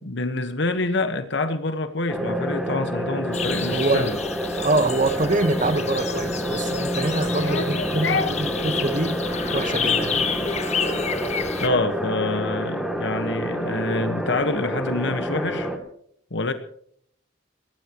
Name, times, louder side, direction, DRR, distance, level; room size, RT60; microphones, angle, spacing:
voice 1, 0.0-4.2 7.4-8.3 11.6-15.7 16.3-16.5, left 3 dB, 65° left, 1.4 m, -26 dB
sound 1, 2.1-15.8, equal, 5° right, 2.6 m, -28 dB
sound 2, 3.3-11.7, left 6 dB, 35° left, 1.5 m, -30 dB
voice 2, 3.7-4.1 4.6-9.2 9.5-10.3, right 2 dB, 45° right, 1.2 m, -25 dB
23.5 x 18.0 x 3.1 m
head